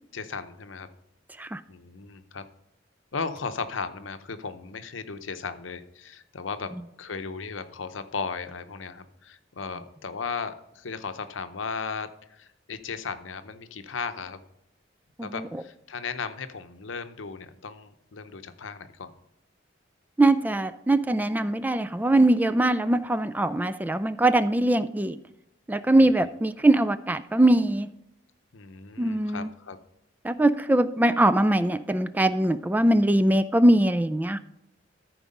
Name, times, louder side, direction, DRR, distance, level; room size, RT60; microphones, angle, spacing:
voice 1, 0.1-0.9 1.7-2.4 3.1-14.4 15.2-19.1 28.5-29.8, left 5 dB, 90° left, 10 dB, 0.8 m, -36 dB
voice 2, 15.2-15.6 20.2-25.2 25.7-27.9 29.0-29.5 30.2-34.4, right 1 dB, 10° right, 12 dB, 0.3 m, -22 dB
13.5 x 4.6 x 5.3 m, 0.84 s
head